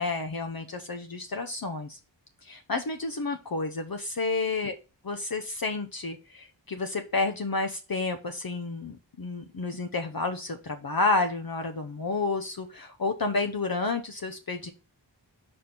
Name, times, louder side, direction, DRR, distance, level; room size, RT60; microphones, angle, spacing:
voice 1, 0.0-2.0 2.4-4.7 5.1-14.7, left 3 dB, 55° left, 6 dB, 0.7 m, -30 dB
5.0 x 4.3 x 5.8 m, 0.31 s
wide cardioid pair, 40°, 44 cm